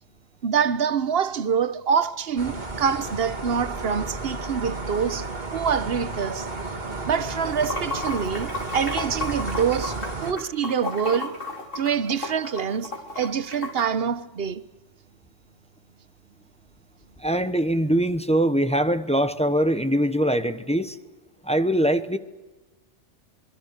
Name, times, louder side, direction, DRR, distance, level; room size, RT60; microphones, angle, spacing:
voice 1, 0.4-6.5 7.1-11.4 11.7-14.6, right 7 dB, 60° right, 1.1 m, -26 dB
sound 1, 2.4-10.3, right 3 dB, 40° right, 2.4 m, -33 dB
Water / Sink (filling or washing), 7.4-13.8, left 2 dB, 50° left, 4.3 m, -33 dB
voice 2, 17.2-21.0 21.4-22.2, right 1 dB, 5° left, 0.9 m, -22 dB
26.5 x 22.5 x 6.7 m
omnidirectional pair, 1.2 m